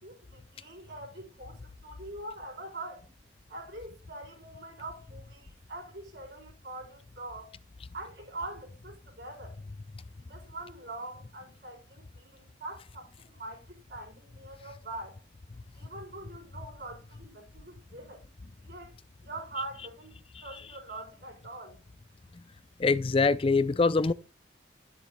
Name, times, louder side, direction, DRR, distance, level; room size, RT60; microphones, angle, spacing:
voice 1, 0.0-3.1 3.5-7.5 7.9-9.6 10.2-15.2 15.7-18.2 18.6-18.9 19.2-20.1 20.4-21.8, right 2 dB, 60° right, 4.3 m, -43 dB
voice 2, 22.8-24.1, left 4 dB, 30° left, 0.4 m, -24 dB
13.0 x 7.2 x 2.2 m
head